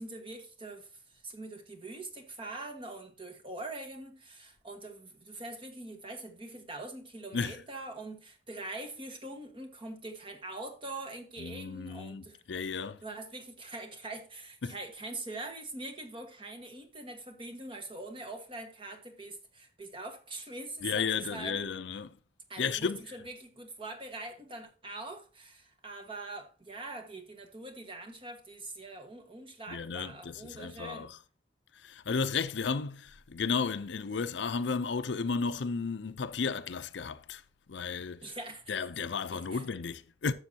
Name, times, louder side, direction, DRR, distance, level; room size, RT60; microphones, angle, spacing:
voice 1, 0.0-12.4 13.0-21.7 22.5-31.1 38.2-38.7 39.3-39.6, right 2 dB, 30° right, 1.5 m, -43 dB
voice 2, 11.4-13.0 14.6-14.8 20.8-22.1 22.6-23.1 29.7-31.2 31.7-37.4 37.7-38.3 38.7-40.3, left 5 dB, 80° left, 0.6 m, -33 dB
12.0 x 7.1 x 2.8 m
head